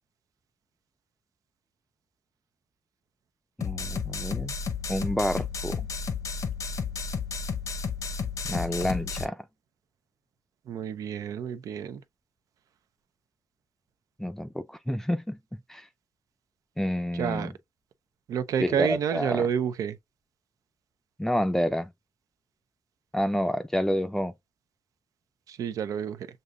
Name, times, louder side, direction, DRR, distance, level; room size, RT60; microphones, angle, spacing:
sound 1, 3.6-9.2, left 5 dB, 70° left, 0.7 m, -32 dB
voice 1, 3.6-4.5 4.9-5.9 8.5-9.4 14.2-15.4 15.7-15.9 16.8-17.5 18.6-19.4 21.2-21.9 23.1-24.3, equal, 5° left, 0.4 m, -29 dB
voice 2, 10.7-12.0 17.1-17.5 18.3-20.0 25.5-26.3, right 8 dB, 90° right, 0.5 m, -29 dB
6.5 x 2.7 x 2.3 m
cardioid pair, 85°, 6 cm